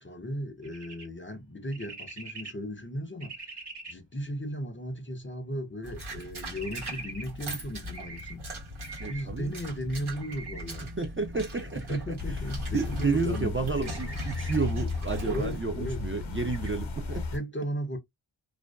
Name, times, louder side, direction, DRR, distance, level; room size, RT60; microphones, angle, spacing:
voice 1, 0.0-3.4 3.9-8.4 9.1-10.9 11.9-14.2 15.2-16.0 17.3-18.0, equal, 25° left, 0.5 m, -36 dB
sound 1, 0.6-1.1 1.7-2.5 3.2-3.9 6.5-7.2 7.9-8.3 8.8-9.2 10.2-10.6 13.8-14.5 16.4-16.7, right 3 dB, 55° right, 1.2 m, -42 dB
sound 2, 5.8-15.6, equal, 85° right, 1.2 m, -40 dB
voice 2, 9.0-9.5 11.0-12.4 12.7-17.3, right 4 dB, 30° right, 0.4 m, -31 dB
sound 3, 12.2-17.4, left 4 dB, 70° left, 0.7 m, -34 dB
2.5 x 2.2 x 2.2 m
wide cardioid pair, 55°, 49 cm